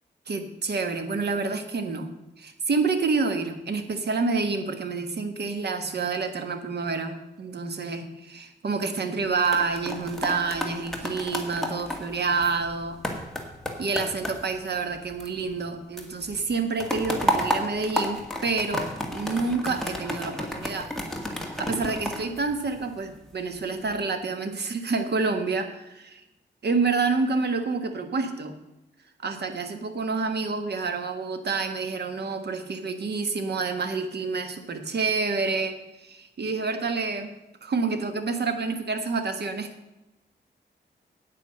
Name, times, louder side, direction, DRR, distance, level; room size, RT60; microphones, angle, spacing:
voice 1, 0.3-13.0 13.8-20.9 21.6-26.2 26.6-28.5 29.2-37.3 37.6-39.7, right 4 dB, 65° right, 7 dB, 1.5 m, -28 dB
sound 1, 9.2-15.7 16.0-23.2 23.7-24.0, equal, ahead, 1.9 m, -32 dB
9.2 x 8.8 x 6.5 m, 0.95 s
wide cardioid pair, 105°, 19 cm